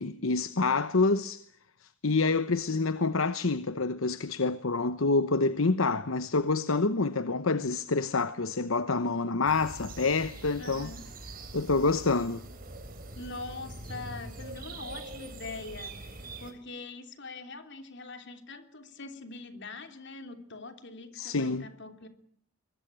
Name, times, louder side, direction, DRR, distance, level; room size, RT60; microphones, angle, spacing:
voice 1, 0.0-1.4 2.0-10.9 11.5-12.4 21.1-21.7, left 3 dB, 70° left, 1.0 m, -27 dB
sound 1, 9.4-16.5, right 2 dB, 40° right, 4.2 m, -43 dB
voice 2, 10.6-11.0 13.1-22.1, left 3 dB, 55° left, 3.2 m, -43 dB
24.0 x 21.0 x 9.1 m
head